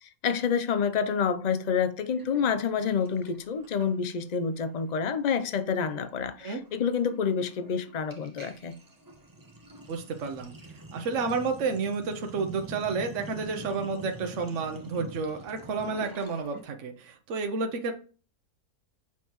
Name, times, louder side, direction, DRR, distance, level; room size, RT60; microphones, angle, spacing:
voice 1, 0.0-8.8, left 6 dB, 55° left, 0.4 m, -28 dB
Sink (filling or washing), 2.2-4.4 4.6-4.9 5.2-16.6, right 2 dB, 15° right, 0.9 m, -46 dB
voice 2, 9.9-10.5 10.9-17.9, right 4 dB, 55° right, 1.2 m, -31 dB
7.4 x 5.8 x 3.0 m
omnidirectional pair, 1.6 m